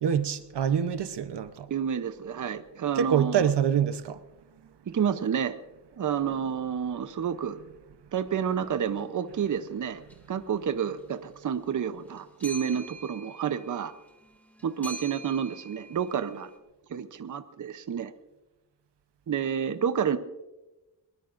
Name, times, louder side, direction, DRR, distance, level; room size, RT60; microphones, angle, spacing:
voice 1, 0.0-1.7 2.9-4.2, right 8 dB, 75° right, 0.9 m, -26 dB
voice 2, 1.7-3.5 4.9-5.6 6.0-7.6 8.1-10.0 10.3-13.9 14.6-16.5 16.9-18.1 19.3-20.2, right 8 dB, 50° right, 0.8 m, -29 dB
sound 1, 8.8-9.0 10.1-10.5 10.8-16.6, right 2 dB, 5° left, 2.2 m, -46 dB
22.0 x 21.0 x 2.6 m
wide cardioid pair, 165°, 41 cm